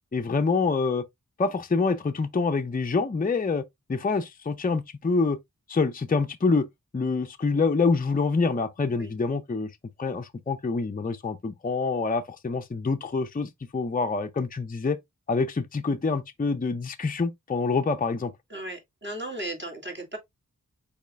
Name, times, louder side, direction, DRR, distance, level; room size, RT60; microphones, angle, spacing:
voice 1, 0.1-1.0 1.4-3.6 3.9-5.4 5.7-6.7 6.9-9.7 10.0-15.0 15.3-18.3, left 4 dB, 25° left, 0.5 m, -26 dB
voice 2, 18.5-20.2, right 1 dB, 35° right, 2.4 m, -36 dB
5.3 x 4.2 x 2.3 m
cardioid pair, 45°, 32 cm